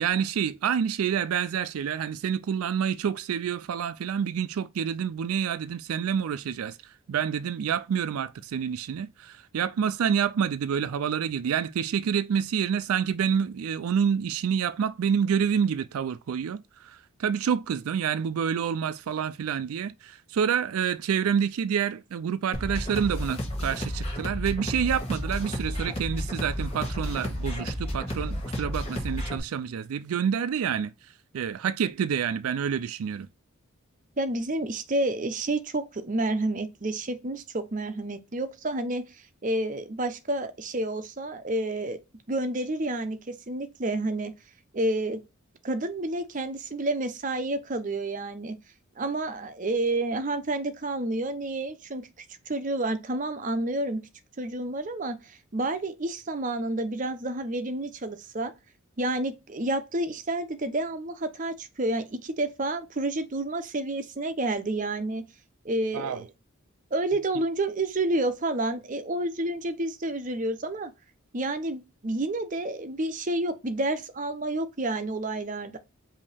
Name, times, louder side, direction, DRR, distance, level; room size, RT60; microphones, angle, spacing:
voice 1, 0.0-33.3 65.9-66.2, right 7 dB, 90° right, 0.4 m, -28 dB
sound 1, 22.5-29.4, equal, 30° left, 1.4 m, -32 dB
voice 2, 34.2-42.0 42.3-44.3 44.7-45.2 45.6-48.6 49.0-52.1 52.5-54.0 54.4-58.5 59.0-65.2 65.6-66.3 66.9-70.9 71.3-75.8, right 2 dB, 35° right, 0.7 m, -29 dB
5.3 x 2.8 x 3.3 m
head